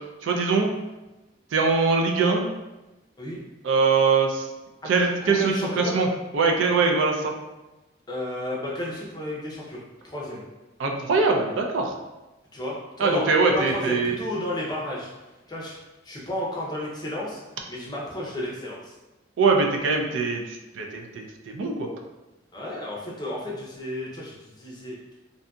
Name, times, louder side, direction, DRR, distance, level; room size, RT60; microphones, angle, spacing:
voice 1, 0.2-0.7 1.5-2.4 3.6-4.5 4.8-6.1 6.3-7.3 10.8-11.9 13.0-14.2 19.4-21.9, right 4 dB, 85° right, 2 dB, 0.4 m, -22 dB
voice 2, 5.3-5.9 8.1-9.8 10.0-10.4 12.5-13.3 13.5-15.1 15.5-15.8 16.0-17.4 17.7-19.0 22.5-25.1, left 1 dB, 20° left, -5 dB, 0.5 m, -32 dB
2.6 x 2.5 x 2.2 m, 1.1 s
head